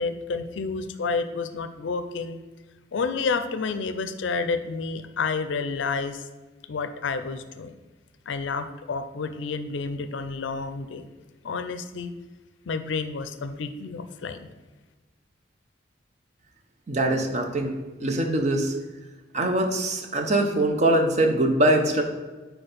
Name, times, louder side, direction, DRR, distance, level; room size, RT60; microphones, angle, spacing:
voice 1, 0.0-2.4 2.9-6.2 6.7-7.7 8.3-11.1 11.4-12.1 12.7-14.5, left 4 dB, 75° left, 10 dB, 0.4 m, -30 dB
voice 2, 16.9-18.7 19.3-22.0, right 1 dB, 35° right, 5 dB, 0.7 m, -23 dB
4.5 x 4.4 x 5.0 m, 1.3 s
head